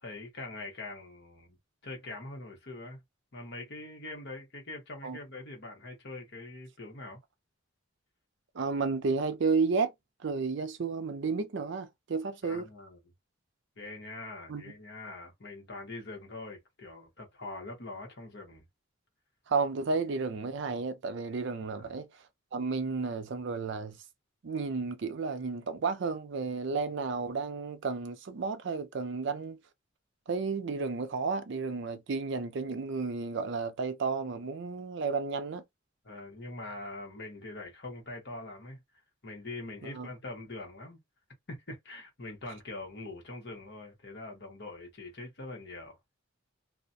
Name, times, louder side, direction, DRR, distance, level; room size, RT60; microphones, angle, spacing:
voice 1, 0.0-1.6 1.8-3.0 3.3-7.2 12.4-13.0 13.8-18.6 21.8-21.9 36.0-38.8 39.2-41.0 41.5-46.0, left 2 dB, 60° left, 1.0 m, -43 dB
voice 2, 8.5-9.9 10.2-12.7 14.5-14.6 19.5-22.1 22.5-24.0 24.4-29.6 30.3-35.6 39.8-40.1, right 4 dB, 60° right, 0.4 m, -32 dB
2.4 x 2.1 x 2.6 m
head